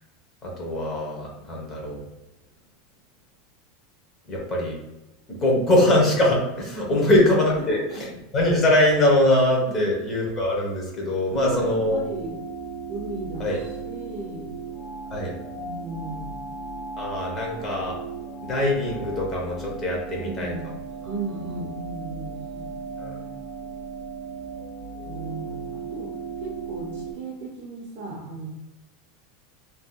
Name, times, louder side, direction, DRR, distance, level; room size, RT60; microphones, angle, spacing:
voice 1, 0.4-2.0 4.3-4.8 5.4-12.0 13.4-13.6 15.1-15.3 17.0-18.0 18.4-20.5 23.0-23.2, left 1 dB, 20° left, -2 dB, 0.9 m, -22 dB
voice 2, 11.2-12.3 12.9-14.5 15.5-16.5 20.2-20.7 21.0-23.3 25.0-26.1 26.4-28.5, right 3 dB, 60° right, -2 dB, 0.8 m, -36 dB
sound 1, 11.3-27.1, right 4 dB, 70° left, 1.0 m, -36 dB
3.5 x 2.7 x 2.3 m, 0.99 s
supercardioid pair, 165°, 0 cm